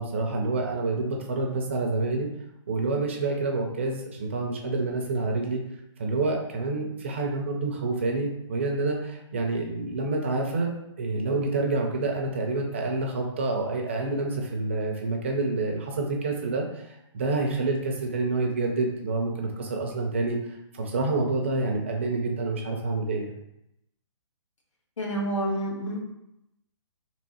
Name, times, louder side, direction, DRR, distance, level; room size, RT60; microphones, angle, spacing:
voice 1, 0.0-2.3 2.7-5.6 6.0-20.4 20.7-23.3, right 3 dB, 25° right, 1 dB, 0.4 m, -28 dB
voice 2, 25.0-26.0, right 1 dB, 75° left, -2 dB, 1.5 m, -28 dB
3.6 x 2.9 x 4.1 m, 0.85 s
hypercardioid pair, 170°, 16 cm